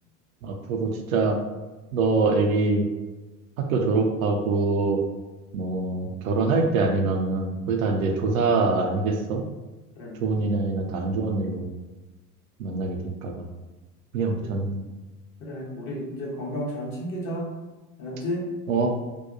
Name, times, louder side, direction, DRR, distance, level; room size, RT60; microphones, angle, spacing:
voice 1, 0.4-1.4 1.9-2.9 3.6-5.0 5.5-9.4 10.2-11.7 12.6-13.5 14.1-14.8 18.7-18.9, right 3 dB, 65° right, 3 dB, 0.5 m, -24 dB
voice 2, 15.4-17.5 18.0-18.5, equal, 40° left, -3 dB, 0.9 m, -32 dB
2.7 x 2.2 x 2.5 m, 1.2 s
figure-of-eight pair, 70°, 44 cm